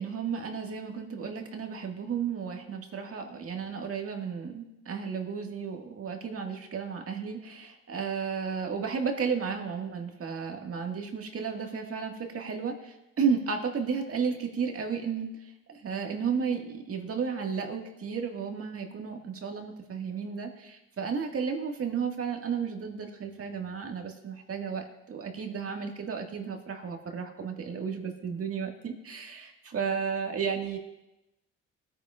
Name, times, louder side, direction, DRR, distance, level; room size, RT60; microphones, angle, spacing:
voice 1, 0.0-15.3 15.7-30.8, right 6 dB, 50° right, 3 dB, 1.8 m, -33 dB
20.5 x 9.4 x 2.4 m, 0.93 s
cardioid pair, 90°, 30 cm